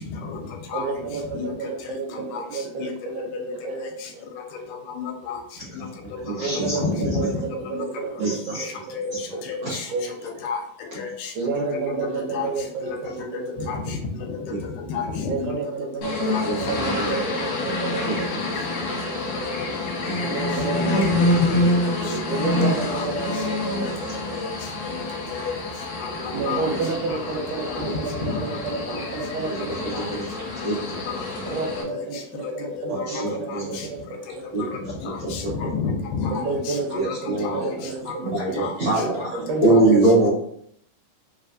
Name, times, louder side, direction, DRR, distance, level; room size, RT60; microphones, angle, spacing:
voice 1, 0.7-4.3 6.4-10.5 11.4-13.7 15.2-18.5 20.2-24.4 26.1-30.5 30.9-31.0 31.5-35.3 36.2-40.3, right 4 dB, 80° right, 2 dB, 2.1 m, -31 dB
voice 2, 5.0-5.4 6.7-7.3 7.7-7.9 8.9-9.1 9.5-9.9 10.4-10.6 11.0-11.3 12.3-12.5 12.8-13.0 13.7-13.8 14.9-15.5 16.3-16.4 16.9-17.0 20.8-20.9 21.2-21.9 22.9-23.2 24.3-24.5 25.3-25.6 26.2-26.7 27.7-27.8 28.3-28.4 28.9-29.0 29.9-30.1 31.9-32.0 32.8-33.2 33.5-33.6 35.1-35.4 35.7-36.8 37.1-37.2 37.4-37.7 38.6-38.7 39.7-39.8, left 5 dB, 85° left, 2 dB, 2.2 m, -30 dB
voice 3, 5.8-7.3 8.2-8.6 9.6-9.8 16.5-17.2 18.1-18.2 20.1-20.4 26.7-26.8 29.5-29.6 30.0-30.3 30.6-31.2 32.9-33.8 34.5-34.9 35.2-35.5 36.9-37.6 38.2-39.3 39.6-40.3, right 2 dB, 60° right, -9 dB, 1.3 m, -24 dB
sound 1, 16.0-31.8, left 2 dB, 65° left, 2.1 m, -27 dB
4.7 x 3.3 x 2.5 m, 0.67 s
omnidirectional pair, 3.8 m